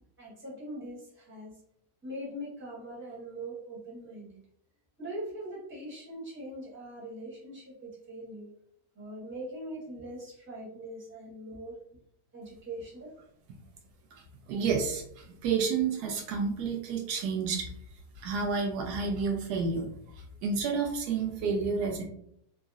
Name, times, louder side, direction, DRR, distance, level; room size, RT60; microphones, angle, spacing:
voice 1, 0.2-1.6 2.0-4.4 5.0-8.5 8.9-11.8 12.3-13.1, right 1 dB, 10° right, -7 dB, 1.0 m, -42 dB
voice 2, 14.5-17.7 18.2-22.0, right 5 dB, 80° right, 1 dB, 1.1 m, -30 dB
3.6 x 2.0 x 2.4 m, 0.70 s
omnidirectional pair, 1.7 m